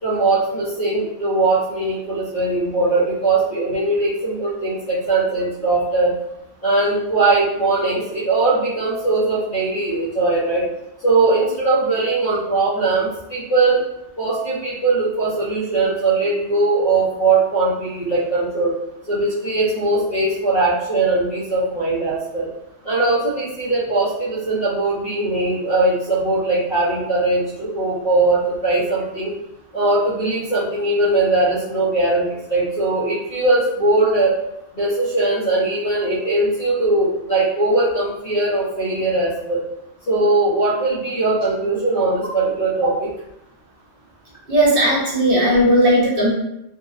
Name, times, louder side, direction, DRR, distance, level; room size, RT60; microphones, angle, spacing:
voice 1, 0.0-6.1 6.6-10.6 11.0-13.8 14.2-18.7 19.1-22.5 22.8-29.3 29.7-34.3 34.7-39.6 40.1-43.1, right 2 dB, 50° left, -9 dB, 0.8 m, -20 dB
voice 2, 44.5-46.3, equal, 50° right, -6 dB, 1.0 m, -16 dB
2.7 x 2.1 x 2.4 m, 0.83 s
omnidirectional pair, 1.3 m